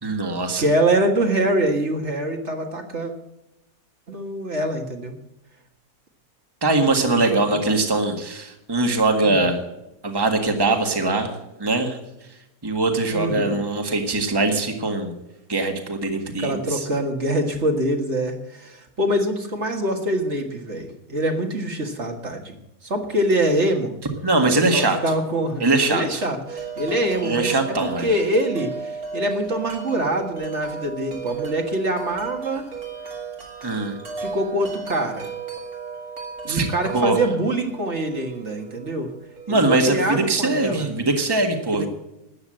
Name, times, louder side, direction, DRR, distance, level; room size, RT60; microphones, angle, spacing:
voice 1, 0.0-0.6 6.6-9.6 10.0-11.3 11.6-12.0 12.6-15.1 15.5-16.8 24.2-25.0 25.6-26.2 27.2-28.1 33.6-33.9 36.5-36.7 36.9-37.2 39.5-41.9, right 2 dB, 15° right, 4 dB, 1.7 m, -21 dB
voice 2, 0.6-3.1 4.1-5.1 6.9-7.6 9.2-9.5 13.1-13.6 16.4-22.5 22.8-23.9 24.7-27.5 27.8-32.7 34.2-35.3 36.5-39.1 39.5-40.9 41.7-41.9, right 1 dB, 50° right, 3 dB, 2.0 m, -24 dB
Wind chime, 26.5-40.4, right 5 dB, 85° right, 3.4 m, -35 dB
13.0 x 9.5 x 7.7 m, 0.92 s
omnidirectional pair, 1.5 m